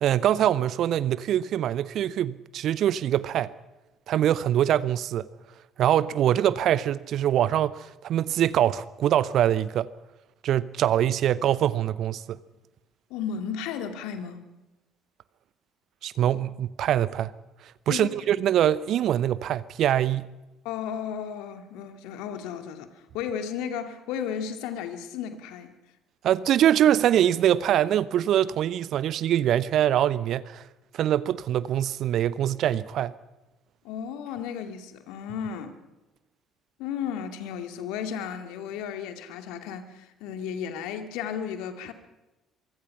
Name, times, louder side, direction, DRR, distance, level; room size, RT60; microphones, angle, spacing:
voice 1, 0.0-3.5 4.1-5.3 5.8-9.9 10.4-12.4 16.0-17.3 17.9-20.3 26.2-30.6 30.9-33.1, right 11 dB, 50° right, 0.8 m, -23 dB
voice 2, 13.1-14.4 17.9-18.2 20.6-25.7 33.8-35.8 36.8-41.9, left 8 dB, 60° left, 2.3 m, -34 dB
24.0 x 24.0 x 5.8 m
figure-of-eight pair, 55°, 0 cm